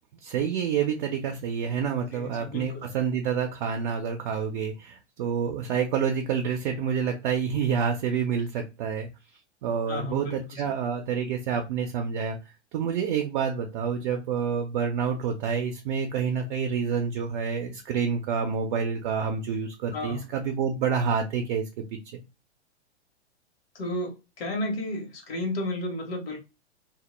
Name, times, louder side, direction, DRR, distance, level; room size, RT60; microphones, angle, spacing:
voice 1, 0.2-9.1 9.6-12.4 12.7-21.6 22.1-22.2, right 7 dB, 45° right, 0.5 m, -28 dB
voice 2, 2.1-2.9 9.9-10.7 19.9-20.2 23.7-26.4, left 1 dB, 60° left, 0.9 m, -33 dB
2.1 x 2.0 x 3.0 m
figure-of-eight pair, 105°, 35 cm